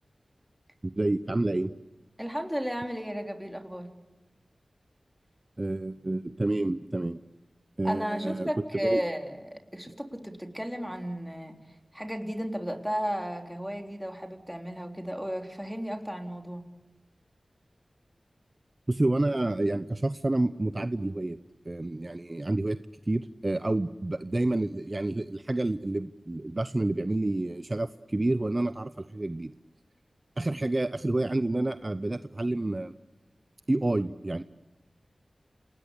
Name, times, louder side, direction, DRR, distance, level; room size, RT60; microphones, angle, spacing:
voice 1, 0.8-1.7 5.6-7.2 7.8-8.5 8.8-9.0 18.9-21.4 21.7-22.8 23.1-29.5 30.4-32.9 33.7-34.4, right 2 dB, 35° right, 12 dB, 0.8 m, -29 dB
voice 2, 2.2-3.9 7.8-11.6 11.9-16.6, equal, 5° right, 4 dB, 3.8 m, -34 dB
28.0 x 20.0 x 8.3 m, 1.2 s
cardioid pair, 50°, 0 cm